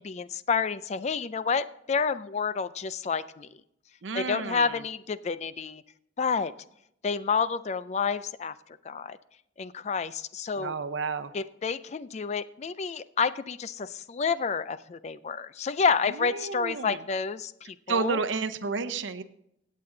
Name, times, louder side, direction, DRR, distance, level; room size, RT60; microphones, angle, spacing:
voice 1, 0.0-3.5 4.1-5.8 6.2-6.5 7.0-8.5 8.8-9.2 9.6-10.8 11.3-18.2, left 5 dB, 35° left, 15 dB, 0.4 m, -29 dB
voice 2, 4.0-4.8 10.5-11.3 16.1-17.0 17.9-19.2, right 4 dB, 85° right, 10 dB, 0.7 m, -31 dB
16.5 x 7.6 x 3.8 m, 0.76 s
head